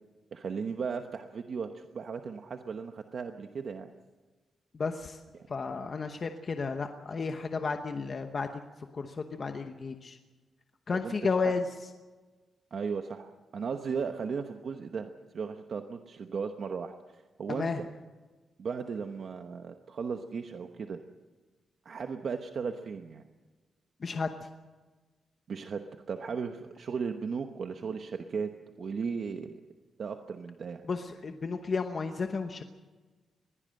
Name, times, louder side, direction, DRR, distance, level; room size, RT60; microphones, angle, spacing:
voice 1, 0.3-3.9 11.0-11.5 12.7-17.9 18.6-21.0 21.8-23.2 25.5-28.5 28.8-29.6 30.0-30.8, right 5 dB, 50° right, 6 dB, 1.0 m, -36 dB
voice 2, 4.7-5.2 5.5-8.6 8.9-10.2 10.9-11.9 17.5-17.8 24.0-24.5 30.8-32.6, left 4 dB, 35° left, 6 dB, 1.0 m, -33 dB
21.0 x 16.5 x 7.7 m, 1.3 s
wide cardioid pair, 180°, 0 cm